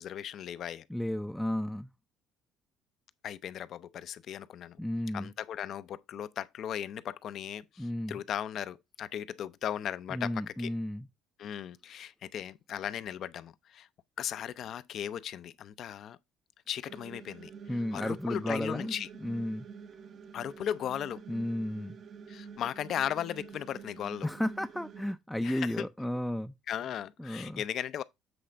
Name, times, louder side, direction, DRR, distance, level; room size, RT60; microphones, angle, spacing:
voice 1, 0.0-0.9 3.2-4.8 5.1-10.7 11.4-13.9 14.2-16.2 16.7-19.1 20.3-21.2 22.3-24.3 25.4-25.9 26.7-28.0, left 10 dB, 60° left, 0.5 m, -37 dB
voice 2, 0.9-1.9 4.8-5.3 7.8-8.2 10.1-11.1 17.7-18.9 19.2-19.7 21.3-22.0 24.2-26.5 27.2-27.6, left 1 dB, 5° left, 0.4 m, -33 dB
sound 1, 16.9-25.1, right 6 dB, 50° right, 0.7 m, -48 dB
7.8 x 3.2 x 5.0 m
supercardioid pair, 75°, 0 cm